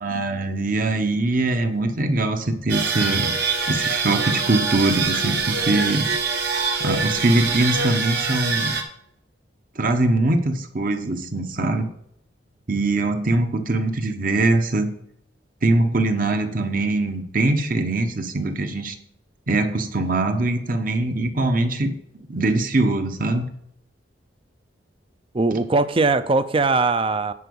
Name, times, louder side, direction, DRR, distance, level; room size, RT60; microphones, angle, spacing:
voice 1, 0.0-3.4 3.7-6.1 6.8-8.8 9.8-11.9 12.7-14.9 15.6-18.9 19.5-23.5, right 2 dB, 50° right, 6 dB, 1.0 m, -22 dB
sound 1, 2.7-8.8, right 4 dB, 65° right, 1.4 m, -24 dB
voice 2, 25.3-27.3, right 3 dB, 30° right, 13 dB, 0.5 m, -20 dB
9.9 x 4.7 x 7.0 m, 0.75 s
head